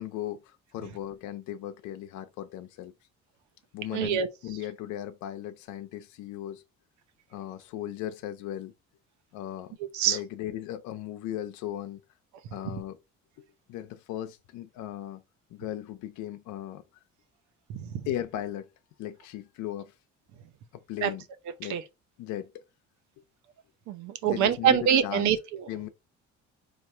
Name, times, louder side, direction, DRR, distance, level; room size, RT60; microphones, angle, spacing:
voice 1, 0.0-2.9 3.7-6.6 7.3-8.7 9.3-9.8 10.0-12.0 12.5-13.0 13.7-15.2 15.5-16.8 18.0-18.7 19.0-19.9 20.7-21.2 21.6-21.8 22.2-22.6 24.2-25.3 25.7-25.9, left 12 dB, 75° left, 0.5 m, -37 dB
voice 2, 3.9-4.3 9.9-10.2 17.7-18.0 21.0-21.1 21.7-21.8 23.9-25.6, right 8 dB, 70° right, 0.7 m, -25 dB
3.2 x 2.5 x 4.3 m
cardioid pair, 110°, 30 cm